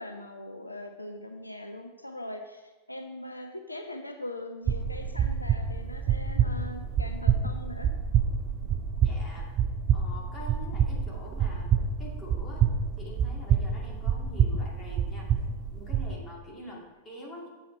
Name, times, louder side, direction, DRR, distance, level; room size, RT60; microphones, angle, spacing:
voice 1, 0.0-7.9 16.6-16.8, left 1 dB, 85° left, 5 dB, 0.5 m, -41 dB
sound 1, 4.7-16.1, right 7 dB, 35° right, 0.4 m, -27 dB
voice 2, 8.6-9.5 9.9-12.7 13.0-15.3 15.7-17.5, left 1 dB, 20° left, -3 dB, 2.3 m, -45 dB
7.6 x 6.3 x 4.3 m, 1.2 s
figure-of-eight pair, 90°, 0 cm